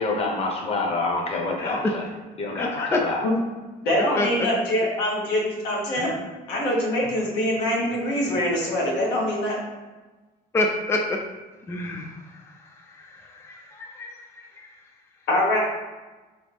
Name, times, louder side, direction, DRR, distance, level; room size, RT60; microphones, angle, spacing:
voice 1, 0.0-2.1 2.4-3.2, left 3 dB, 35° left, -1 dB, 1.0 m, -27 dB
voice 2, 2.6-3.0 4.2-4.5 6.0-6.1 10.5-11.2 11.7-12.1 13.4-14.1 14.6-14.7, left 2 dB, 15° left, 2 dB, 0.4 m, -26 dB
voice 3, 3.8-6.1 6.5-9.6 15.3-15.6, left 1 dB, 85° left, -3 dB, 1.2 m, -24 dB
3.7 x 3.0 x 3.4 m, 1.2 s
cardioid pair, 110°, 17 cm